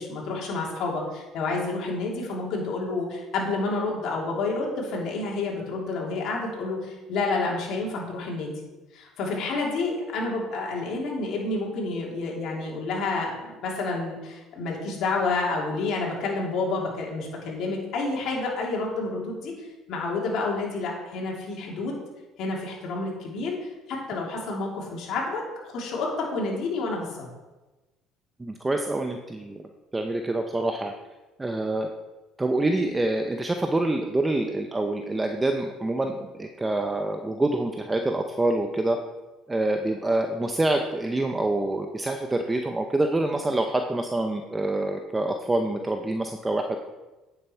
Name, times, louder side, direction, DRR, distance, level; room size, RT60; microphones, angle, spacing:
voice 1, 0.0-8.5 8.9-21.9 22.4-27.3, left 3 dB, 65° left, -2 dB, 3.0 m, -29 dB
voice 2, 28.4-29.6 29.9-30.9 31.4-31.9 32.4-39.0 39.5-46.8, right 2 dB, 15° right, 4 dB, 0.7 m, -26 dB
9.4 x 7.0 x 4.5 m, 1.1 s
supercardioid pair, 90°, 0 cm